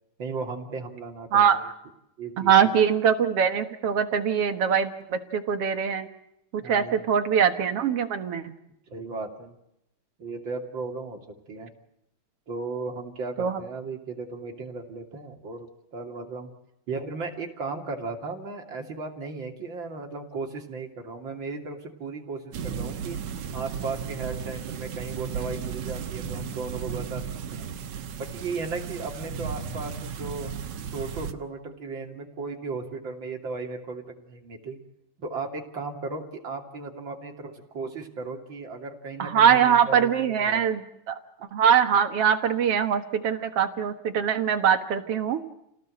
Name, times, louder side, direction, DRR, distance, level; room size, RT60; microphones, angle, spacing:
voice 1, 0.2-1.6 2.2-2.5 6.6-6.9 8.9-9.5 10.2-11.2 11.5-11.7 12.5-16.5 16.9-23.2 23.5-27.2 27.5-27.7 28.1-30.5 30.9-34.8 35.2-40.6, right 4 dB, 40° right, 3 dB, 3.4 m, -36 dB
voice 2, 1.3-1.7 2.4-6.1 6.5-8.5 13.4-13.6 39.2-40.8 41.1-41.2 41.5-45.4, right 8 dB, 55° right, 8 dB, 2.3 m, -22 dB
sound 1, 22.5-31.3, right 7 dB, 70° right, 2.5 m, -35 dB
29.0 x 18.0 x 7.8 m, 0.82 s
omnidirectional pair, 3.3 m